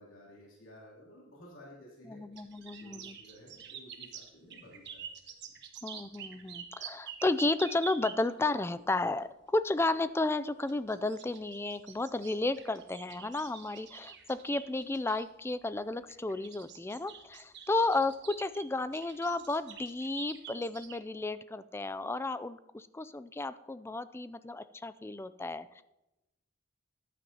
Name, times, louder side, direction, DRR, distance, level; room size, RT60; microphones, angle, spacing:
voice 1, 0.0-2.2 2.8-5.5, equal, 85° left, -5 dB, 3.0 m, -54 dB
voice 2, 2.1-3.2 5.8-25.8, left 2 dB, 10° left, 14 dB, 0.3 m, -33 dB
sound 1, 2.4-8.5 10.7-15.3 16.1-21.0, right 8 dB, 60° right, 1.2 m, -47 dB
14.5 x 11.0 x 2.8 m, 0.97 s
head